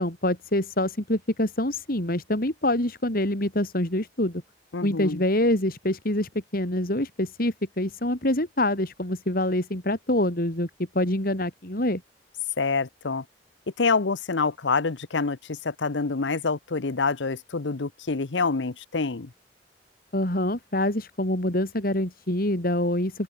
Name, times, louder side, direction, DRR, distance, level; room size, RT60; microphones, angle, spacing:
voice 1, 0.0-4.4 4.8-10.7 10.9-12.0 20.1-23.2, left 1 dB, 55° left, 3.8 m, -25 dB
voice 2, 4.7-5.2 12.6-13.2 13.8-19.3, left 4 dB, 85° left, 0.9 m, -26 dB
open air
head